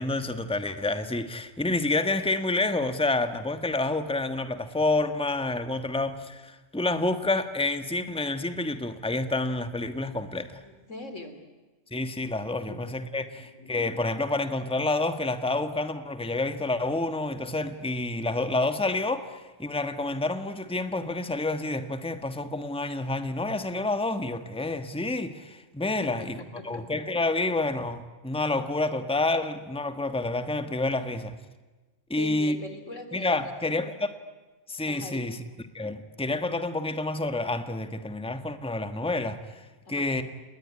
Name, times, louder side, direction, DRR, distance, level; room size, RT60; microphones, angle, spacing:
voice 1, 0.0-10.6 11.9-26.4 26.6-31.3 32.1-32.6 33.1-34.1 34.7-35.4 35.7-40.2, left 2 dB, 5° left, 9 dB, 1.4 m, -29 dB
voice 2, 10.6-11.4 12.7-12.8 13.3-13.8 26.0-26.3 26.7-26.8 32.2-33.5 34.9-35.4 39.9-40.1, left 2 dB, 85° left, 8 dB, 3.6 m, -41 dB
29.5 x 20.5 x 9.7 m, 1.2 s
omnidirectional pair, 1.2 m